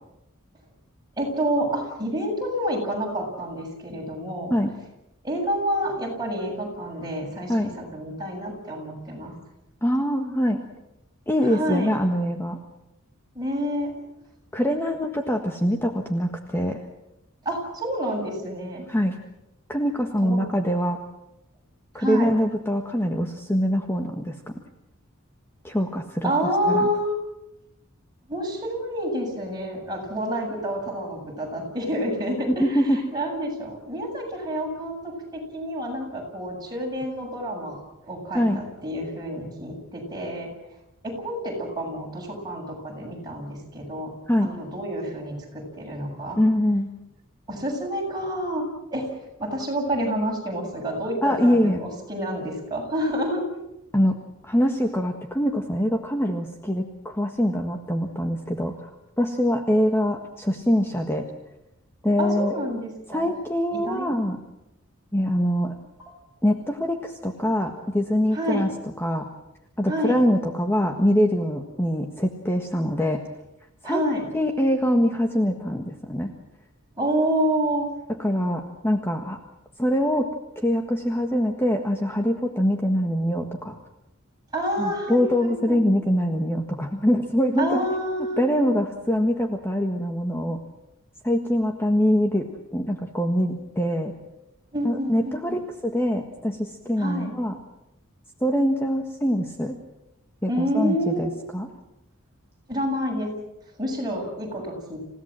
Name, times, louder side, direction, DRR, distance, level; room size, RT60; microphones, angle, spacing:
voice 1, 1.2-4.6 5.2-9.3 11.4-12.0 13.3-13.9 17.4-18.9 20.2-20.5 22.0-22.3 26.2-27.1 28.3-37.8 38.1-40.5 41.0-44.1 44.4-46.4 47.5-48.6 48.9-53.4 62.2-63.4 63.7-64.1 66.0-66.1 68.3-68.6 69.8-70.2 73.8-74.2 77.0-77.9 84.5-85.8 87.6-88.4 94.7-95.3 97.0-97.3 100.5-101.2 102.7-103.3 103.8-105.0, equal, 20° right, -1 dB, 7.9 m, -28 dB
voice 2, 9.8-10.6 11.3-12.6 14.5-16.8 18.9-19.2 19.7-21.0 21.9-24.4 25.6-26.3 26.7-26.9 32.5-33.0 38.3-38.6 44.3-44.5 46.4-46.9 51.2-51.8 53.9-54.2 54.4-58.9 59.2-61.3 62.0-62.5 63.1-64.4 65.1-65.7 66.4-68.7 69.0-69.3 69.8-73.2 73.8-74.0 74.3-76.3 78.1-79.4 79.8-80.3 80.6-83.8 84.8-87.8 88.4-90.6 91.2-92.4 92.7-94.1 94.8-97.6 98.4-99.7 100.4-101.7, equal, 10° left, 3 dB, 1.6 m, -24 dB
28.5 x 17.0 x 7.6 m, 0.90 s
head